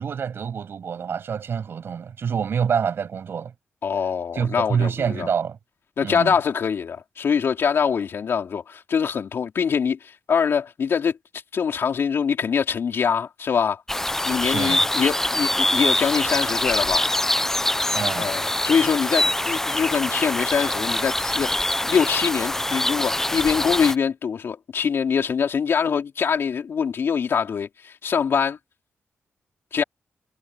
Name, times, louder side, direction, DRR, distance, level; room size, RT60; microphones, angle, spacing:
voice 1, 0.0-3.5 4.3-5.6 6.0-6.3 14.5-14.8 17.9-18.3, right 7 dB, 65° right, 7.0 m, -26 dB
voice 2, 3.8-5.3 6.0-11.2 11.5-13.8 14.2-17.1 18.2-28.6 29.7-29.8, left 6 dB, 65° left, 4.1 m, -24 dB
sound 1, 13.9-24.0, left 1 dB, 10° left, 0.7 m, -24 dB
wide cardioid pair, 115°, 4 cm